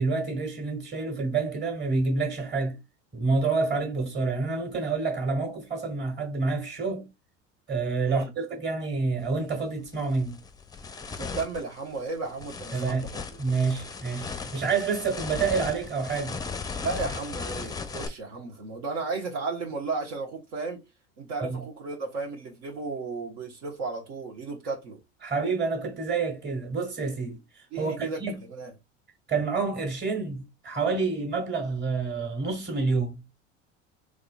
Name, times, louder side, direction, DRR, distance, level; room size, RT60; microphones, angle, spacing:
voice 1, 0.0-2.8 3.1-7.1 7.7-10.4 12.7-13.0 13.4-16.4 21.4-21.6 25.2-28.4 29.3-33.2, right 4 dB, 30° right, 1.7 m, -28 dB
sound 1, 9.2-9.4 9.9-18.1, left 5 dB, 10° left, 0.5 m, -37 dB
voice 2, 11.1-13.2 16.8-20.8 21.2-25.0 27.7-28.2 28.5-28.7, right 4 dB, 75° right, 1.3 m, -34 dB
3.7 x 3.3 x 2.3 m
hypercardioid pair, 75°, 37 cm